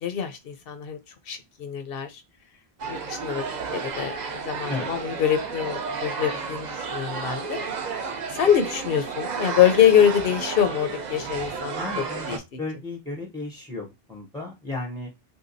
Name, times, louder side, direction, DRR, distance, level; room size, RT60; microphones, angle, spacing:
voice 1, 0.0-1.0 1.3-2.2 2.9-3.4 3.7-7.6 8.3-11.8 12.3-12.6, left 9 dB, 70° left, 0.8 m, -24 dB
sound 1, 2.8-12.4, right 5 dB, 50° right, 0.6 m, -32 dB
voice 2, 11.8-12.3 12.6-15.1, left 2 dB, 5° left, 0.5 m, -34 dB
3.5 x 2.8 x 2.6 m
omnidirectional pair, 1.1 m